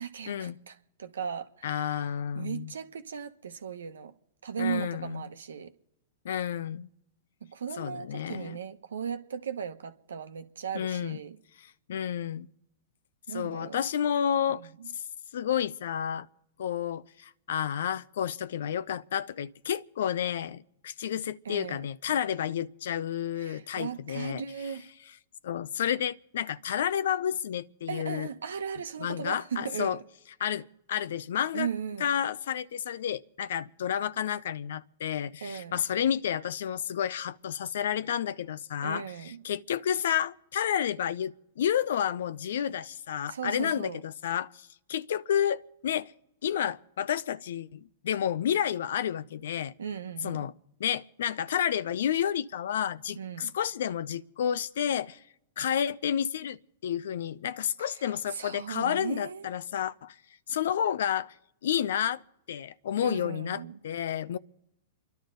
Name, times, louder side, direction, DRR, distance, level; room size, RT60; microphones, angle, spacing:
voice 1, 0.0-2.1 2.3-4.1 4.4-5.7 7.4-11.4 13.3-13.8 14.5-14.9 21.4-21.9 23.4-24.9 27.9-30.0 31.5-32.1 35.4-35.8 38.8-39.4 43.3-44.0 49.8-50.5 53.1-53.5 57.8-59.5 63.0-63.8, right 7 dB, 85° right, 1.1 m, -37 dB
voice 2, 1.6-2.7 4.6-5.2 6.2-6.9 7.8-8.6 10.7-11.2 11.6-12.5 13.3-14.6 14.9-15.0 15.3-16.3 16.6-24.4 25.4-28.3 29.0-30.0 30.4-31.7 32.0-46.1 46.4-49.7 50.2-50.5 50.8-55.2 55.6-60.1 60.5-61.3 61.6-62.2 62.5-64.4, left 9 dB, 70° left, 0.5 m, -30 dB
29.5 x 11.5 x 3.9 m
hypercardioid pair, 115°, 0 cm